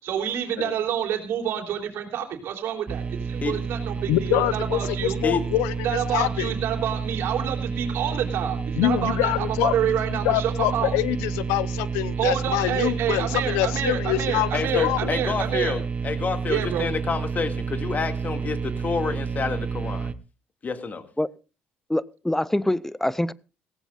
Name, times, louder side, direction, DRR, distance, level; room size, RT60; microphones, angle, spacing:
voice 1, 0.0-5.2 5.8-10.9 12.2-15.8 16.5-16.9, right 9 dB, 70° right, 3.4 m, -28 dB
sound 1, 2.9-20.1, right 5 dB, 30° right, 0.9 m, -30 dB
voice 2, 4.1-6.5 8.8-15.1, left 14 dB, 85° left, 0.8 m, -25 dB
voice 3, 14.5-20.1 20.6-21.0, left 4 dB, 40° left, 2.3 m, -28 dB
voice 4, 21.9-23.3, left 1 dB, 5° left, 0.6 m, -24 dB
18.0 x 16.5 x 2.5 m
supercardioid pair, 70°, 4 cm